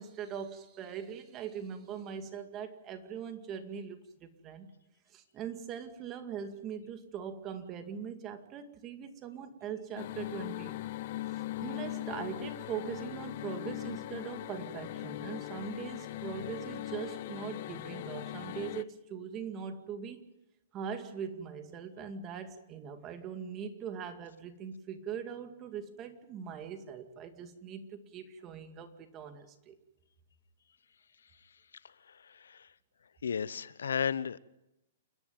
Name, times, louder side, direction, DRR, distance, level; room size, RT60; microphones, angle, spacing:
voice 1, 0.0-4.7 5.1-10.8 11.3-20.3 20.7-29.8, right 7 dB, 25° right, 2.2 m, -41 dB
sound 1, 10.0-18.8, left 16 dB, 50° left, 0.7 m, -40 dB
voice 2, 31.8-32.7 33.2-34.4, left 7 dB, 90° left, 0.8 m, -35 dB
29.0 x 11.0 x 9.4 m
hypercardioid pair, 145°, 0 cm